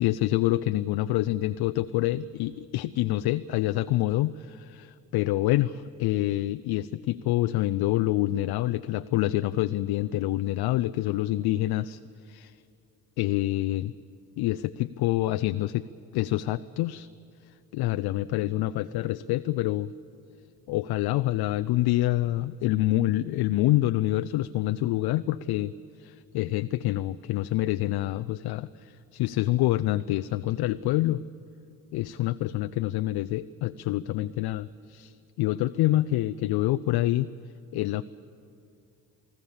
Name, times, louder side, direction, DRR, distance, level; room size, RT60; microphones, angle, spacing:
voice 1, 0.0-5.7 6.0-12.0 12.3-12.5 13.2-13.9 14.4-15.9 16.1-17.1 17.7-19.9 20.7-25.7 26.0-31.2 31.9-37.3 37.7-38.0, left 15 dB, 60° left, 12 dB, 0.6 m, -26 dB
28.5 x 18.0 x 7.2 m, 2.5 s
hypercardioid pair, 45°, 44 cm